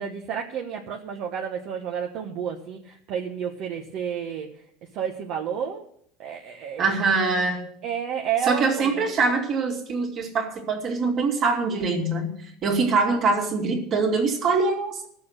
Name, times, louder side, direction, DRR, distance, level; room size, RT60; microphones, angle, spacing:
voice 1, 0.0-4.5 4.9-5.9 6.2-6.9 7.8-9.0, right 8 dB, 45° right, 0 dB, 1.2 m, -31 dB
voice 2, 6.8-7.6 8.4-12.3 12.6-15.1, right 4 dB, 30° right, 2 dB, 2.4 m, -23 dB
14.5 x 6.9 x 6.5 m, 0.66 s
cardioid pair, 165°, 0 cm